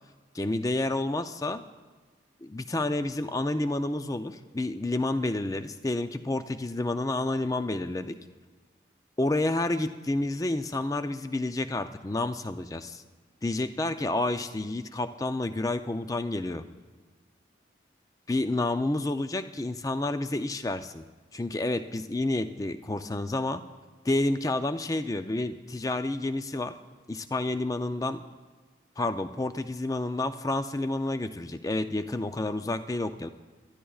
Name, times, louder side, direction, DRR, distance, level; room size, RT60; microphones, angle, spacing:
voice 1, 0.3-1.6 2.4-8.2 9.2-13.0 13.4-16.6 18.3-21.0 21.3-23.6 24.0-26.7 27.1-28.2 29.0-33.3, left 2 dB, 20° left, 10 dB, 0.4 m, -29 dB
24.0 x 12.5 x 2.4 m, 1.4 s
head